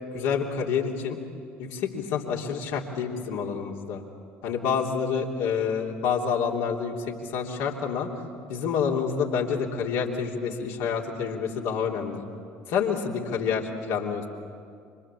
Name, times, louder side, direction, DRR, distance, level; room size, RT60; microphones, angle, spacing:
voice 1, 0.1-1.2 1.6-4.0 4.4-8.1 8.5-12.2 12.7-14.3, left 6 dB, 70° left, -1 dB, 3.1 m, -28 dB
28.5 x 25.0 x 7.5 m, 2.3 s
hypercardioid pair, 60°, 6 cm